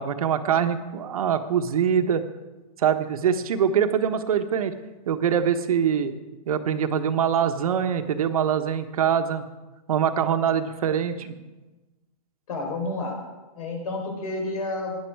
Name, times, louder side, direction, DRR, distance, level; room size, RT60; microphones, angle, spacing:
voice 1, 0.0-2.2 2.8-4.7 5.1-6.1 6.5-9.5 9.9-11.3, right 8 dB, 65° right, 8 dB, 1.2 m, -23 dB
voice 2, 12.5-13.2 13.6-15.1, left 2 dB, 70° left, 2 dB, 4.4 m, -30 dB
16.5 x 10.5 x 4.7 m, 1.2 s
hypercardioid pair, 170°, 19 cm